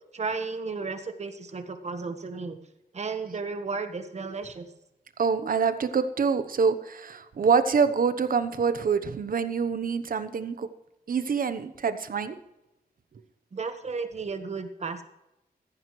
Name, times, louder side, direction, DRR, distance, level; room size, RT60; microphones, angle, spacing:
voice 1, 0.1-2.6 2.9-4.7 13.5-15.0, right 4 dB, 45° right, 8 dB, 1.3 m, -33 dB
voice 2, 5.2-10.7 11.1-12.4, right 5 dB, 60° right, 11 dB, 1.0 m, -25 dB
15.0 x 15.0 x 3.2 m, 0.92 s
wide cardioid pair, 150°, 16 cm